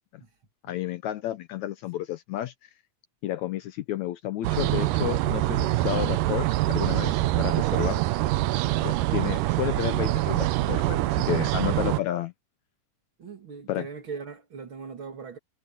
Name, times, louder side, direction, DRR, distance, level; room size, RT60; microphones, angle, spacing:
voice 1, 0.7-2.5 3.2-8.0 8.9-12.3 13.7-13.9, left 13 dB, 75° left, 1.9 m, -31 dB
sound 1, 4.4-12.0, right 17 dB, 85° right, 2.3 m, -25 dB
voice 2, 7.7-8.1 8.7-9.0 13.2-15.4, right 5 dB, 40° right, 2.6 m, -40 dB
omnidirectional pair, 3.7 m